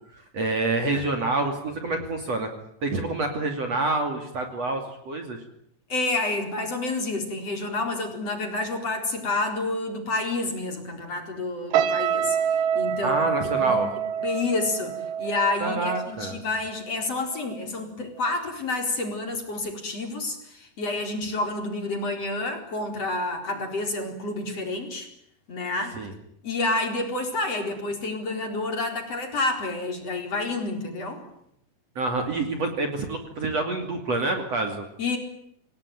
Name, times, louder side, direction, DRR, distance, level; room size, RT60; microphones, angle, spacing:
voice 1, 0.3-2.5 2.8-5.4 13.0-13.9 15.6-16.4 26.0-26.1 32.0-34.8, right 2 dB, 40° right, 5 dB, 3.4 m, -27 dB
voice 2, 5.9-25.1 25.5-26.0 26.4-31.3 35.0-35.2, left 2 dB, 35° left, 4 dB, 5.1 m, -29 dB
sound 1, 11.7-17.0 17.3-17.7, right 8 dB, 85° right, 3.9 m, -27 dB
28.0 x 18.5 x 9.3 m, 0.75 s
omnidirectional pair, 4.9 m